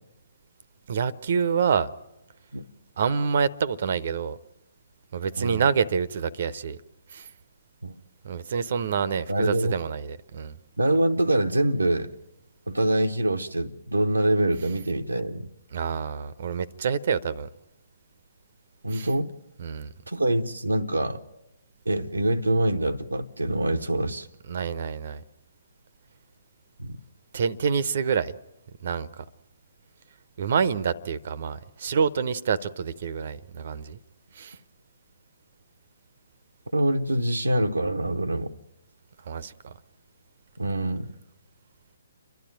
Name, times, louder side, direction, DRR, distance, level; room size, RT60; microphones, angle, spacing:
voice 1, 0.9-1.9 3.0-4.4 5.1-6.8 7.1-7.3 8.2-10.6 15.7-17.5 18.9-19.1 19.6-19.9 24.5-25.2 27.3-28.3 28.8-29.2 30.4-34.0 34.3-34.6 39.3-39.7, right 6 dB, 50° right, 0.8 m, -27 dB
voice 2, 9.3-9.7 10.8-12.1 12.7-15.5 18.8-19.3 20.1-21.2 21.9-24.3 26.8-27.0 36.7-38.5 40.6-41.1, right 1 dB, 85° right, 0.9 m, -25 dB
29.0 x 12.0 x 9.1 m
figure-of-eight pair, 130°, 0 cm